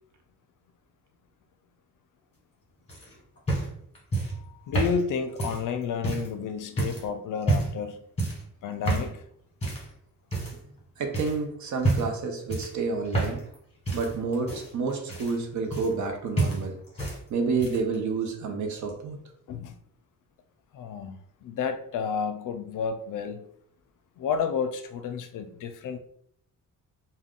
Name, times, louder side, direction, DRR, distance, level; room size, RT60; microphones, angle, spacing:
sound 1, 2.9-6.3 6.8-7.1 7.4-7.8 8.2-8.5 8.8-9.1 9.6-9.9 10.3-10.8 11.1-11.4 11.8-12.2 12.5-13.6 13.8-16.1 16.4-17.2 17.5-17.9 18.9-19.0, right 2 dB, 20° left, 1.2 m, -29 dB
voice 1, 4.3-8.0 8.6-9.2 19.5-19.7 20.7-23.5 24.2-26.0, left 6 dB, 65° left, 8 dB, 0.5 m, -31 dB
voice 2, 11.0-13.4 13.9-16.8 17.3-19.2, right 4 dB, 60° right, 4 dB, 0.7 m, -29 dB
2.3 x 2.2 x 3.6 m, 0.67 s
cardioid pair, 100°, 33 cm